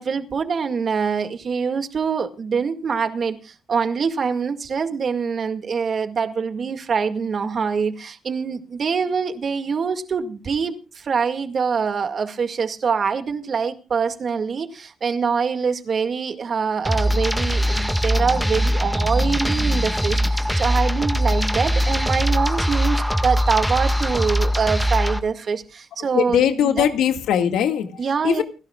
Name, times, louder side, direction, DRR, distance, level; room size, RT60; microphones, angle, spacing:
voice 1, 0.0-26.9 28.0-28.4, right 5 dB, 45° right, 2.0 m, -24 dB
sound 1, 16.8-25.2, equal, ahead, 1.7 m, -21 dB
voice 2, 26.1-28.4, left 9 dB, 85° left, 2.0 m, -21 dB
29.0 x 12.0 x 2.4 m
cardioid pair, 90°, 0 cm